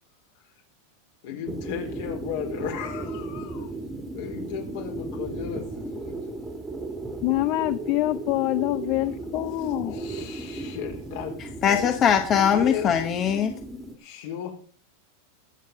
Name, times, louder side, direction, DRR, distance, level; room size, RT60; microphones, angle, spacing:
voice 1, 1.2-3.7 4.1-6.5 9.6-12.1 12.5-12.9 14.0-14.5, left 8 dB, 60° left, 4.2 m, -35 dB
sound 1, 1.5-14.0, right 2 dB, 10° right, 1.6 m, -35 dB
voice 2, 7.2-10.1, left 18 dB, 45° left, 0.5 m, -25 dB
voice 3, 11.6-13.6, left 8 dB, 25° left, 1.0 m, -21 dB
21.5 x 7.4 x 3.8 m
supercardioid pair, 155°, 0 cm